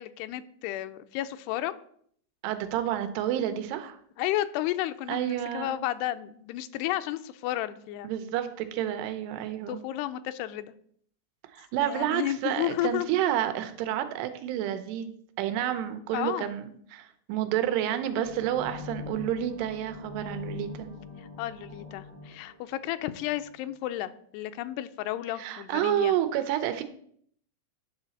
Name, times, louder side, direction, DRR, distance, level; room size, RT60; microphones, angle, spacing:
voice 1, 0.0-1.7 4.2-8.1 9.7-10.7 11.8-13.1 16.1-16.5 21.4-26.1, left 14 dB, 85° left, 11 dB, 2.6 m, -32 dB
voice 2, 2.4-4.0 5.1-5.8 8.0-9.8 11.5-15.1 15.4-20.9 25.4-26.8, right 11 dB, 90° right, 8 dB, 2.9 m, -29 dB
sound 1, 18.2-23.6, left 5 dB, 50° left, 0.4 m, -43 dB
11.0 x 4.0 x 7.0 m, 0.63 s
omnidirectional pair, 4.6 m